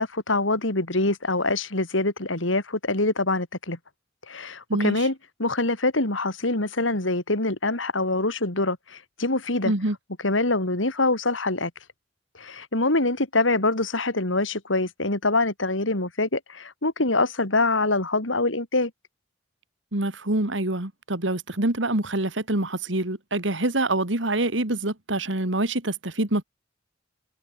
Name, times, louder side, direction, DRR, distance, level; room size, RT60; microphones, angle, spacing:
voice 1, 0.0-3.8 4.3-9.7 10.2-11.7 12.4-18.9, left 2 dB, 85° left, 4.1 m, -24 dB
voice 2, 4.7-5.0 9.6-10.0 19.9-26.4, right 2 dB, 70° right, 2.8 m, -26 dB
head